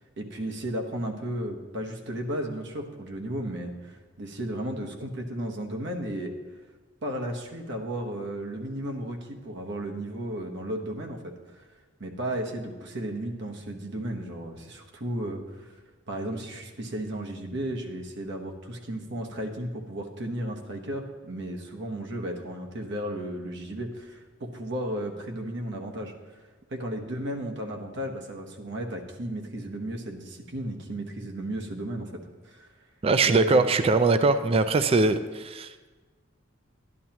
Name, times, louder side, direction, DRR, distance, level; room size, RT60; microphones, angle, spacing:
voice 1, 0.2-6.3 7.0-11.7 12.0-15.8 16.1-26.1 26.7-32.1 32.4-32.7 33.2-33.7, right 1 dB, 65° right, 2 dB, 1.0 m, -34 dB
voice 2, 33.0-35.9, right 3 dB, 30° right, 11 dB, 0.4 m, -22 dB
12.0 x 11.0 x 2.9 m, 1.3 s
head